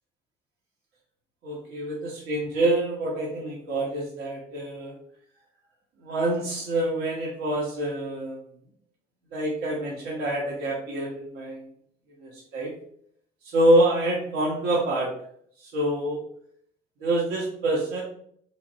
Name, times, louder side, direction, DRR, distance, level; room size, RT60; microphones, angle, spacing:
voice 1, 1.4-4.9 6.0-8.4 9.3-11.6 12.2-12.7 13.5-15.1 15.7-16.2 17.0-18.0, right 1 dB, 80° right, -4 dB, 1.0 m, -26 dB
3.4 x 3.1 x 2.7 m, 0.65 s
cardioid pair, 110°, 17 cm